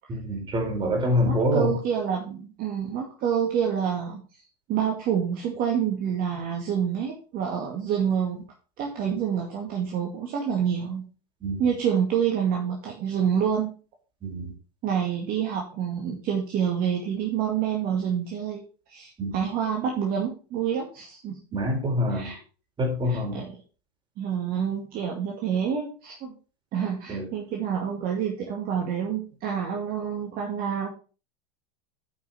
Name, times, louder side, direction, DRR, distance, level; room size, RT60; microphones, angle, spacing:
voice 1, 0.1-1.8 11.4-11.6 14.2-14.5 19.2-19.3 21.5-22.3 22.8-23.4 27.1-27.3, equal, 25° right, 1 dB, 4.3 m, -25 dB
voice 2, 0.8-4.2 4.7-8.4 8.8-11.0 11.6-13.7 14.8-21.4 22.1-22.4 23.1-23.5 24.2-26.3 26.7-30.9, right 8 dB, 45° right, 0 dB, 2.1 m, -27 dB
9.3 x 5.9 x 4.3 m, 0.35 s
hypercardioid pair, 115°, 21 cm